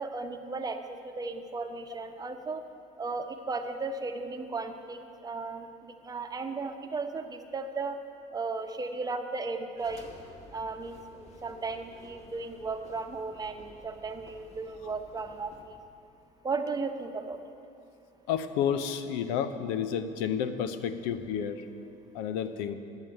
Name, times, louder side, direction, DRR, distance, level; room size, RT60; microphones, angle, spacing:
voice 1, 0.0-2.6 3.0-8.0 8.3-10.1 10.5-15.8 16.4-17.4, right 3 dB, 20° right, 6 dB, 0.9 m, -35 dB
sound 1, 9.7-15.6, left 2 dB, 35° left, 1.7 m, -53 dB
voice 2, 18.3-21.7 22.1-22.8, left 8 dB, 85° left, 11 dB, 0.7 m, -30 dB
11.0 x 7.4 x 7.7 m, 2.6 s
supercardioid pair, 100°, 18 cm